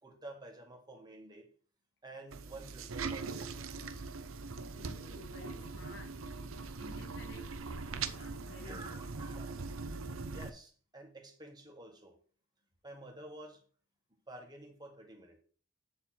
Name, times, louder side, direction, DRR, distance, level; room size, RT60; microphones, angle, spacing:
voice 1, 0.0-1.5 2.0-3.7 8.6-9.6 10.3-12.2 12.8-13.6 14.3-15.4, right 2 dB, 20° right, 1.8 m, -50 dB
sound 1, 2.3-10.5, right 4 dB, 85° right, 0.8 m, -41 dB
voice 2, 4.7-6.2 6.5-7.6 7.9-9.4 10.1-10.2, left 2 dB, 55° left, 2.1 m, -54 dB
8.8 x 7.1 x 4.4 m
head